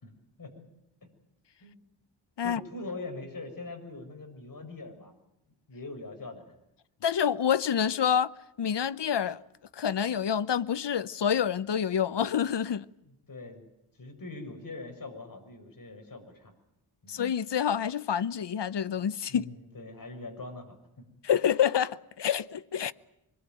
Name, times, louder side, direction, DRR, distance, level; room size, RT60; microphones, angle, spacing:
voice 1, 2.4-5.1 5.7-6.4 13.3-13.6 14.0-16.5 17.0-17.2 19.3-20.8, left 2 dB, 45° left, 6.6 m, -42 dB
voice 2, 7.0-8.3 8.6-9.4 9.7-12.9 17.1-19.4 21.2-22.9, left 8 dB, 60° left, 1.0 m, -27 dB
25.5 x 21.5 x 9.3 m
wide cardioid pair, 90°, 48 cm